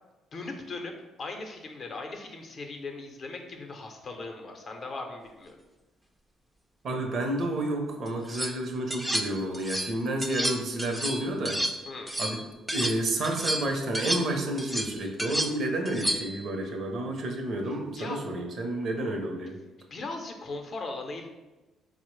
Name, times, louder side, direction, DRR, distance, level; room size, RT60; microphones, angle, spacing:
voice 1, 0.3-0.9 1.2-5.6 11.9-12.1 17.7-18.2 19.9-21.3, left 3 dB, 50° left, 3 dB, 0.6 m, -38 dB
voice 2, 6.8-11.6 12.2-12.4 12.7-19.6, right 1 dB, 60° right, 3 dB, 0.6 m, -30 dB
sound 1, 8.1-8.5 8.9-9.9 10.2-13.0 13.2-16.4, right 1 dB, 10° right, 0.3 m, -31 dB
4.2 x 2.0 x 3.1 m, 1.1 s
supercardioid pair, 65°, 0 cm